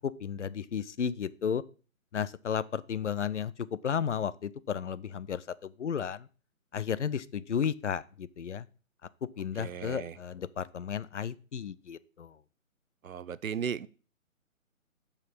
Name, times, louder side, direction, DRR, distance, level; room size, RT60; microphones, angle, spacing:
voice 1, 0.0-1.6 2.1-6.3 6.7-8.7 9.2-12.4, left 7 dB, 55° left, 0.6 m, -33 dB
voice 2, 9.6-10.2 13.0-13.9, right 7 dB, 75° right, 0.7 m, -36 dB
6.8 x 5.7 x 6.0 m
figure-of-eight pair, 150°, 42 cm